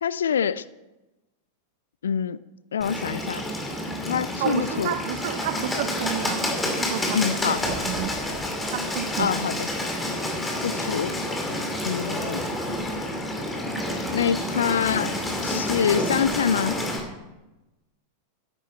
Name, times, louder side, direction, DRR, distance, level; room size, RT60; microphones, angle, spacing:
voice 1, 0.0-0.6 2.0-2.4 2.7-3.4 4.1-4.9 7.1-7.6 9.2-9.7 10.6-11.1 11.9-12.4 14.1-15.1 15.4-16.7, left 7 dB, 65° left, 18 dB, 0.3 m, -25 dB
Bird, 2.8-17.0, left 1 dB, 10° left, 2.6 m, -29 dB
voice 2, 4.4-8.1 8.7-9.4, right 11 dB, 55° right, 9 dB, 0.7 m, -31 dB
13.0 x 10.5 x 4.3 m, 1.0 s
figure-of-eight pair, 90°, 0 cm